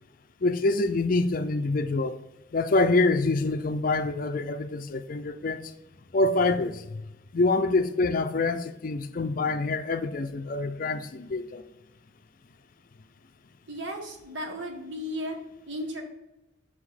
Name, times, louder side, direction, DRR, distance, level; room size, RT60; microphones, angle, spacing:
voice 1, 0.4-2.2 2.5-5.6 6.1-7.0 7.3-11.6, left 2 dB, 45° left, 0.5 m, -26 dB
voice 2, 13.7-15.4 15.7-16.0, equal, 70° right, 1.4 m, -35 dB
6.1 x 4.9 x 4.2 m
head